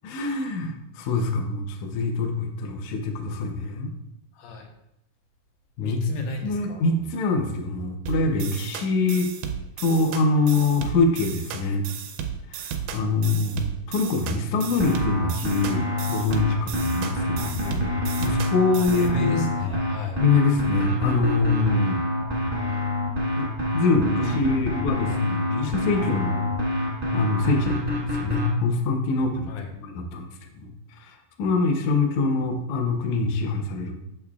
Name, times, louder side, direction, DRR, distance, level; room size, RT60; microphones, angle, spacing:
voice 1, 0.0-3.9 5.8-6.0 6.4-9.3 9.8-11.9 12.5-17.9 18.2-19.5 20.2-22.0 23.4-23.5 23.7-26.5 27.1-30.3 30.6-30.7 31.0-33.9, left 3 dB, 75° left, 3 dB, 1.8 m, -24 dB
voice 2, 4.4-4.7 5.8-6.8 18.7-20.2 29.5-29.7, left 4 dB, 90° left, 3 dB, 2.7 m, -33 dB
sound 1, 8.1-19.1, right 8 dB, 80° right, 1.8 m, -34 dB
sound 2, 14.8-28.5, left 1 dB, 30° right, 0.7 m, -26 dB
7.1 x 6.7 x 2.3 m, 0.84 s
omnidirectional pair, 4.0 m